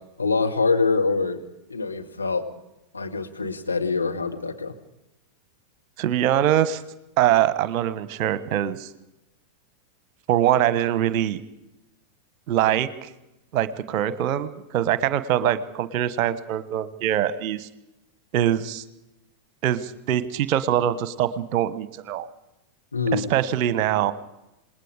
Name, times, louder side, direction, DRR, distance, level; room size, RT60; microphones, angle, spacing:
voice 1, 0.2-1.4 1.7-2.5 2.9-4.7 22.9-23.3, left 4 dB, 80° left, 3 dB, 1.9 m, -24 dB
voice 2, 6.0-6.8 7.2-8.9 10.3-11.4 12.5-13.1 13.5-17.7 18.3-18.8 19.6-22.3 23.1-24.1, right 11 dB, 45° right, 15 dB, 1.2 m, -23 dB
27.0 x 20.0 x 5.1 m, 0.91 s
figure-of-eight pair, 90°, 0 cm